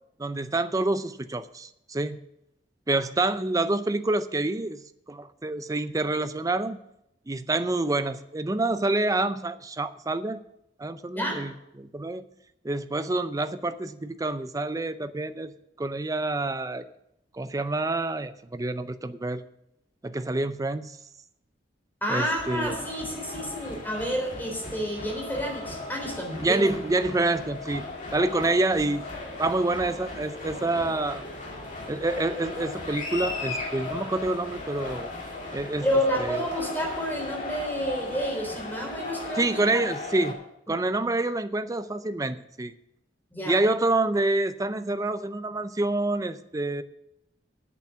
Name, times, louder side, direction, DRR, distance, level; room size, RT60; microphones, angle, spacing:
voice 1, 0.2-2.2 2.9-6.8 7.3-10.4 10.8-12.2 12.6-15.5 15.8-16.8 17.3-19.4 20.0-21.0 22.1-22.8 26.4-27.8 28.1-29.1 29.4-31.2 31.9-35.1 35.5-35.9 36.2-36.4 39.4-40.4 40.7-42.7 43.5-46.8, right 2 dB, 20° right, 12 dB, 0.5 m, -27 dB
voice 2, 22.0-26.6 35.8-39.8 43.3-43.6, equal, 10° left, 0 dB, 3.5 m, -29 dB
sound 1, 22.4-40.3, left 2 dB, 45° left, 2.2 m, -37 dB
8.3 x 7.0 x 8.4 m, 0.81 s
head